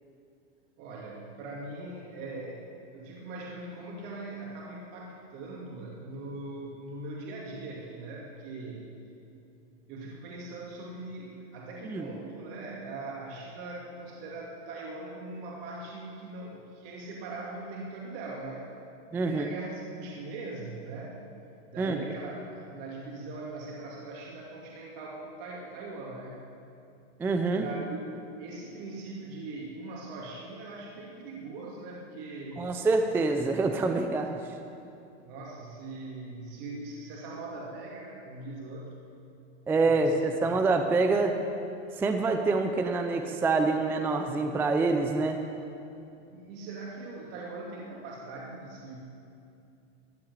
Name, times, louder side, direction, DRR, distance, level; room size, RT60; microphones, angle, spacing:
voice 1, 0.8-8.9 9.9-18.6 19.1-21.2 21.7-26.4 27.5-32.7 35.2-38.9 39.8-40.2 46.2-49.0, right 2 dB, 50° right, -3 dB, 2.5 m, -41 dB
voice 2, 19.1-19.4 21.8-22.0 27.2-27.6 32.6-34.3 39.7-41.3 42.0-45.4, right 3 dB, 5° right, 5 dB, 0.4 m, -26 dB
14.5 x 8.7 x 9.3 m, 2.6 s
supercardioid pair, 140°, 36 cm